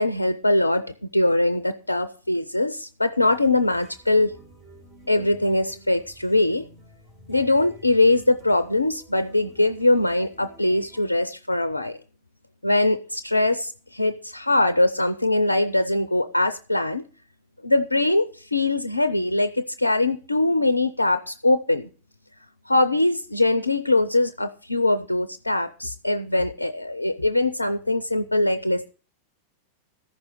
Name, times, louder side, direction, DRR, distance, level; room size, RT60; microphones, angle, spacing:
voice 1, 0.0-4.3 5.1-6.6 7.3-12.0 12.6-17.0 17.6-21.9 22.7-28.9, left 2 dB, 85° left, 0.5 m, -22 dB
sound 1, 3.2-11.1, right 1 dB, 30° right, 3.5 m, -50 dB
14.0 x 6.1 x 6.6 m
figure-of-eight pair, 90°, 0 cm